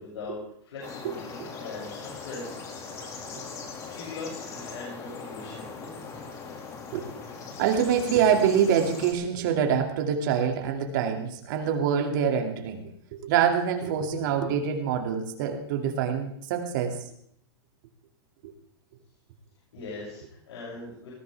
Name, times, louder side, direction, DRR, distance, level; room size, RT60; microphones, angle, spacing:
voice 1, 0.0-2.9 3.9-6.0 19.7-21.1, left 3 dB, 85° left, -6 dB, 7.2 m, -41 dB
sound 1, 0.8-9.1, left 4 dB, 20° left, 2.2 m, -40 dB
voice 2, 7.6-12.8 13.2-17.0 18.4-18.5, right 8 dB, 45° right, 4 dB, 2.4 m, -25 dB
19.5 x 15.5 x 3.5 m, 0.68 s
supercardioid pair, 165°, 14 cm